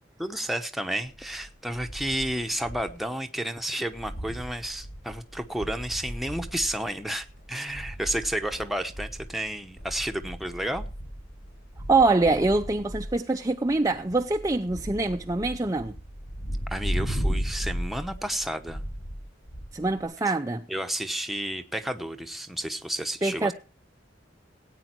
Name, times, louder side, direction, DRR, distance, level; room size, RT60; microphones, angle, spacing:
voice 1, 0.2-10.9 16.7-18.8 20.7-23.5, right 1 dB, ahead, 1.0 m, -31 dB
sound 1, 1.0-3.0 3.3-3.4 3.7-20.0, equal, 65° left, 6.6 m, -36 dB
voice 2, 11.9-15.9 19.7-20.6 23.2-23.5, right 3 dB, 20° right, 0.6 m, -24 dB
18.0 x 9.1 x 4.5 m
head